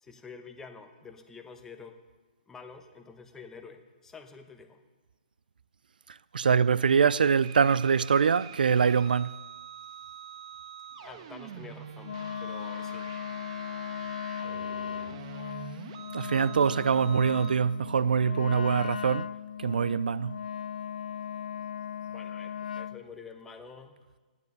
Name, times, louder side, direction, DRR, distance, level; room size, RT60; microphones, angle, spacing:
voice 1, 0.0-2.0 2.5-4.8 11.0-13.1 22.0-23.9, left 5 dB, 10° left, 0.9 m, -48 dB
voice 2, 6.3-9.4 16.1-19.3 19.6-20.4, right 6 dB, 85° right, 0.4 m, -24 dB
sound 1, 7.4-17.6, right 8 dB, 40° right, 1.2 m, -45 dB
Wind instrument woodwind instrument, 12.0-23.0, left 8 dB, 70° left, 0.5 m, -37 dB
14.5 x 11.0 x 6.6 m
hypercardioid pair, 155°, 5 cm